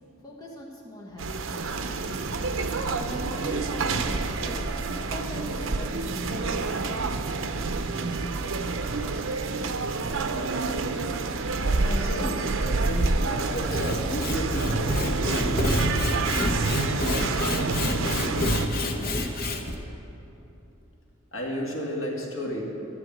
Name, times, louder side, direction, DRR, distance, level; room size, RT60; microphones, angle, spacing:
voice 1, 0.2-4.6 5.0-7.2 17.0-19.3, left 1 dB, 20° left, -4 dB, 1.6 m, -42 dB
sound 1, 1.2-18.7, right 3 dB, 75° right, 0.7 m, -28 dB
voice 2, 11.6-15.5 21.3-22.6, equal, 70° left, -2 dB, 2.2 m, -33 dB
Sawing / Wood, 13.6-19.8, left 1 dB, 50° left, 1.1 m, -28 dB
13.0 x 8.0 x 7.6 m, 2.9 s
head